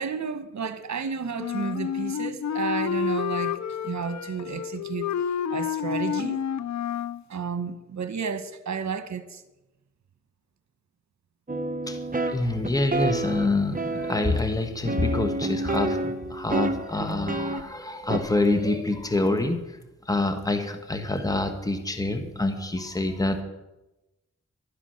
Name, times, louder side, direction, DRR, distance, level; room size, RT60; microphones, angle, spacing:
voice 1, 0.0-5.1 5.5-6.4 7.3-9.4, right 6 dB, 70° right, 1.2 m, -32 dB
Wind instrument woodwind instrument, 1.4-7.2, left 8 dB, 70° left, 0.6 m, -29 dB
sound 1, 11.5-14.4 14.8-17.6 18.1-18.2, right 2 dB, 30° right, 1.2 m, -29 dB
voice 2, 12.2-19.8 20.0-23.4, left 2 dB, 10° left, 1.5 m, -26 dB
12.5 x 10.0 x 6.6 m
cardioid pair, 55°, 29 cm